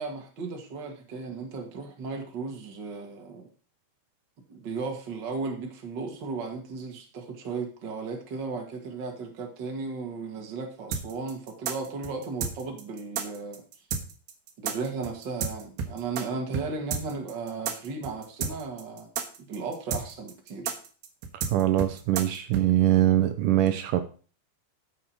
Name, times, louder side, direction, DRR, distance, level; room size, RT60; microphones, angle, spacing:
voice 1, 0.0-3.5 4.5-13.6 14.6-19.1 19.4-20.7, right 4 dB, 40° right, 1.9 m, -35 dB
sound 1, 10.9-16.2 16.5-16.7 16.9-22.7, right 6 dB, 90° right, 3.3 m, -31 dB
voice 2, 21.5-24.0, right 12 dB, 75° right, 2.1 m, -23 dB
11.5 x 7.3 x 4.5 m
omnidirectional pair, 4.2 m